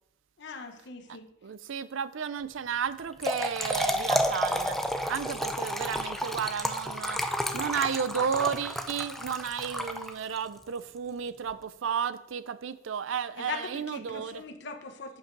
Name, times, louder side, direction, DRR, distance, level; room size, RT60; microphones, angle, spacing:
voice 1, 0.4-1.3 13.4-15.2, left 5 dB, 60° left, 6 dB, 0.9 m, -40 dB
voice 2, 1.4-4.8 5.1-7.2 7.5-14.4, right 7 dB, 70° right, 15 dB, 0.4 m, -32 dB
Trickle dribble / Fill (with liquid), 3.0-10.5, equal, ahead, 0.5 m, -31 dB
7.9 x 5.4 x 5.2 m, 0.81 s
head